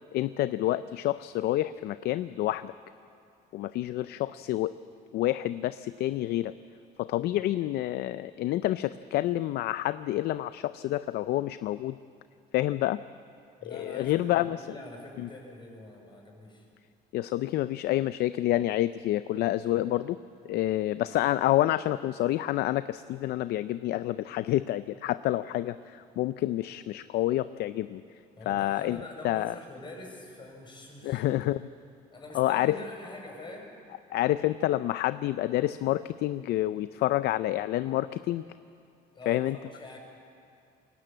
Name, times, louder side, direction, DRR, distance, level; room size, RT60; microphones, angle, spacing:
voice 1, 0.1-2.7 3.5-4.8 5.1-6.5 7.0-12.0 12.5-13.0 13.6-14.6 15.2-15.3 17.1-20.2 20.5-28.0 28.5-29.6 31.0-31.7 32.3-32.8 34.1-38.4 39.3-39.6, left 14 dB, 75° left, 14 dB, 0.5 m, -28 dB
voice 2, 13.6-16.7 28.3-31.2 32.1-33.7 39.1-40.0, left 2 dB, 30° left, 1 dB, 6.5 m, -45 dB
22.0 x 18.0 x 8.9 m, 2.6 s
cardioid pair, 110°, 17 cm